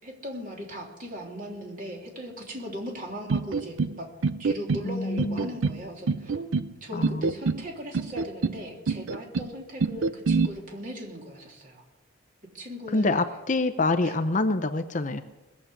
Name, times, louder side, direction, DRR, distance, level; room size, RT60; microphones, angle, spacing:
voice 1, 0.0-4.1 4.4-6.5 6.8-11.8 12.5-13.1 14.0-14.2, equal, 45° right, 0 dB, 3.3 m, -38 dB
sound 1, 3.3-3.9 4.2-4.9 5.2-5.8 6.1-6.7 7.0-7.6 7.9-8.6 8.9-9.5 9.8-10.5, right 4 dB, 90° right, 0.5 m, -26 dB
voice 2, 4.8-5.5 6.9-7.3 12.9-15.2, left 2 dB, 40° left, 9 dB, 0.7 m, -26 dB
20.5 x 7.4 x 8.2 m, 1.1 s
head